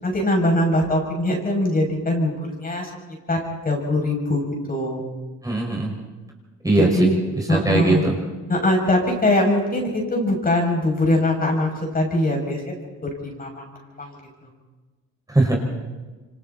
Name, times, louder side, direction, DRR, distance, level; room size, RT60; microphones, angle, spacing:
voice 1, 0.0-2.9 3.3-3.4 3.6-4.4 4.7-5.0 6.8-7.2 7.5-8.0 8.5-12.9 13.2-14.2, left 1 dB, 30° left, 0 dB, 7.2 m, -22 dB
voice 2, 5.4-5.9 6.6-7.1 7.3-8.1 15.3-15.6, right 2 dB, 10° right, -1 dB, 5.6 m, -20 dB
28.0 x 25.0 x 4.3 m, 1.2 s
cardioid pair, 90°, 30 cm